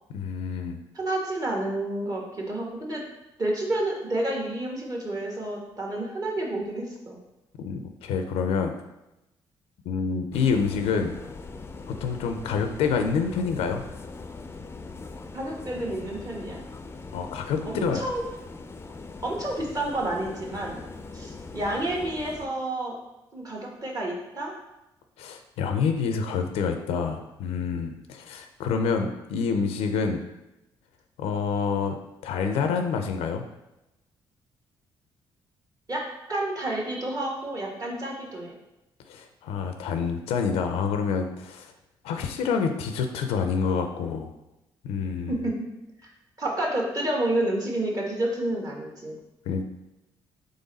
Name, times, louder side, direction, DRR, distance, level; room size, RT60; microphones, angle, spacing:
voice 1, 0.1-0.8 7.6-8.7 9.9-11.2 11.9-13.8 17.1-18.0 25.2-30.3 31.2-31.9 32.2-33.4 39.1-41.7 42.0-44.3 44.8-45.4 49.5-49.6, left 5 dB, 80° left, 6 dB, 0.4 m, -27 dB
voice 2, 0.9-3.0 3.4-7.2 15.3-16.6 17.6-18.2 19.2-20.8 21.1-23.0 23.3-24.5 35.9-36.0 36.3-38.5 45.3-45.6 46.0-46.1 46.4-49.1, right 1 dB, 35° right, -1 dB, 1.4 m, -29 dB
sound 1, 10.3-22.5, left 3 dB, 25° left, 0.4 m, -41 dB
3.9 x 3.3 x 4.0 m, 0.93 s
supercardioid pair, 60°, 10 cm